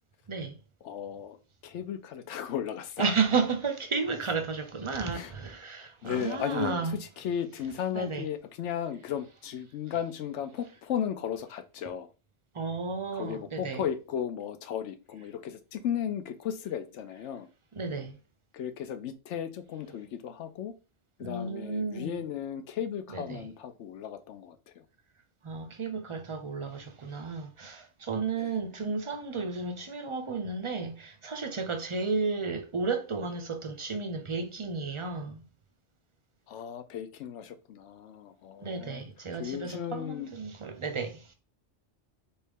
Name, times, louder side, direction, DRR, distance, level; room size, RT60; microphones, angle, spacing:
voice 1, 0.3-0.6 3.0-7.0 7.9-8.2 12.5-13.8 17.7-18.2 21.2-22.2 23.1-23.5 25.4-35.4 38.6-41.3, right 4 dB, 40° right, 0.4 m, -33 dB
voice 2, 0.8-1.4 1.6-3.1 5.1-5.3 6.0-12.1 13.1-17.5 18.5-20.7 21.2-24.9 28.3-28.6 36.5-39.0 39.4-40.3, left 9 dB, 85° left, 0.9 m, -35 dB
4.3 x 3.5 x 3.5 m
omnidirectional pair, 1.2 m